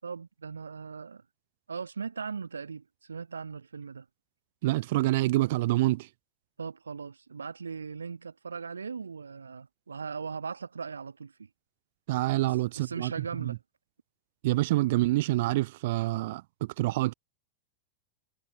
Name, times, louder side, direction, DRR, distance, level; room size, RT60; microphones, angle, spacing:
voice 1, 0.0-1.2 1.7-4.1 6.6-11.5 12.4-13.6, right 5 dB, 75° right, 5.9 m, -39 dB
voice 2, 4.6-6.1 12.1-13.1 14.4-17.1, right 18 dB, 50° right, 0.6 m, -26 dB
figure-of-eight pair, 90°, 0 cm